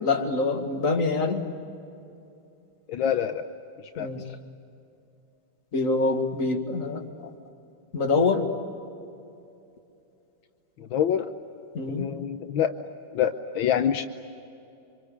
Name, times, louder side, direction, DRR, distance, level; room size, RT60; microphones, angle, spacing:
voice 1, 0.0-1.4 4.0-4.2 5.7-7.3 7.9-8.5 11.7-12.1, left 3 dB, 40° left, 2 dB, 2.5 m, -25 dB
voice 2, 2.9-3.4 3.8-4.1 10.8-11.3 11.9-12.7 13.1-14.1, left 9 dB, 80° left, 7 dB, 1.6 m, -26 dB
28.5 x 25.5 x 8.3 m, 2.7 s
omnidirectional pair, 2.2 m